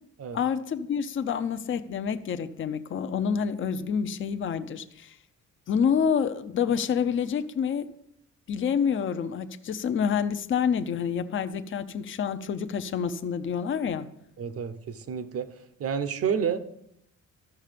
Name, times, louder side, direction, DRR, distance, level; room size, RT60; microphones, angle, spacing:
voice 1, 0.3-5.2 5.7-7.9 8.5-14.1, left 7 dB, 45° left, 0.6 m, -28 dB
voice 2, 14.4-15.5 15.8-16.6, right 7 dB, 50° right, 0.8 m, -29 dB
13.5 x 6.5 x 5.1 m
wide cardioid pair, 165°, 29 cm